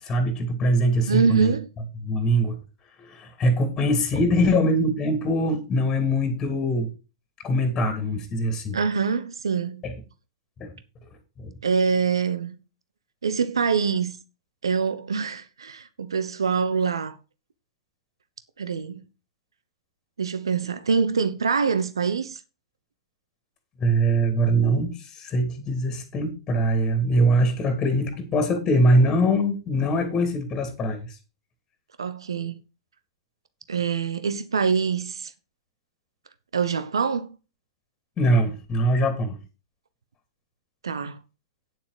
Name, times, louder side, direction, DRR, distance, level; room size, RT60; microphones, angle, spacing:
voice 1, 0.0-1.5 2.0-2.6 3.0-6.9 7.4-8.8 9.8-9.9 10.6-10.7 11.4-11.5 23.8-31.2 38.2-39.4, right 1 dB, 20° left, 2.7 m, -23 dB
voice 2, 1.1-1.7 8.7-9.8 11.6-12.5 13.2-14.2 14.6-17.2 18.6-19.0 20.2-22.4 32.0-32.6 33.7-35.3 36.5-37.4 40.8-41.2, right 5 dB, 70° right, 1.0 m, -24 dB
9.5 x 7.2 x 5.0 m
figure-of-eight pair, 105°, 3 cm